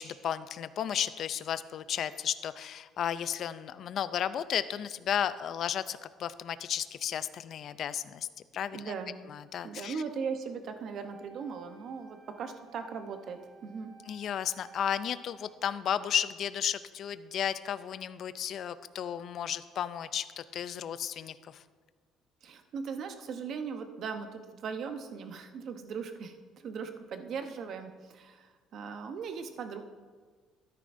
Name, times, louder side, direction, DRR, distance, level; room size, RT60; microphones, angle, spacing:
voice 1, 0.0-8.3 8.5-8.9 9.3-10.0 14.1-21.6, left 9 dB, 50° left, 14 dB, 0.4 m, -33 dB
voice 2, 8.7-9.2 9.6-13.9 22.4-29.8, right 5 dB, 50° right, 7 dB, 0.8 m, -39 dB
Wind instrument woodwind instrument, 11.0-16.1, right 4 dB, 30° right, 1.2 m, -56 dB
12.5 x 10.0 x 2.6 m, 1.5 s
cardioid pair, 140°, 0 cm